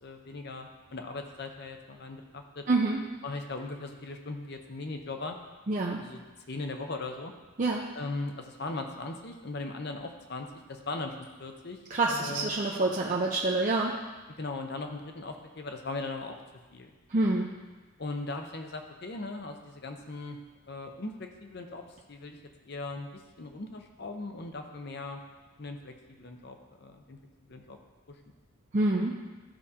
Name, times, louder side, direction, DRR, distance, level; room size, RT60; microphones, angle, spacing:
voice 1, 0.0-2.6 3.2-5.4 6.0-6.2 6.5-7.3 7.9-11.8 12.1-12.5 14.4-16.4 16.7-16.9 17.2-17.3 18.0-20.4 20.7-21.8 22.1-22.4 22.6-25.2 25.6-27.2 27.5-27.8, left 3 dB, 50° left, 4 dB, 0.7 m, -39 dB
voice 2, 2.7-3.0 5.7-6.0 7.6-7.9 11.9-13.9 17.1-17.5 28.7-29.2, right 2 dB, 35° right, -2 dB, 0.5 m, -27 dB
12.5 x 4.9 x 2.8 m, 1.2 s
head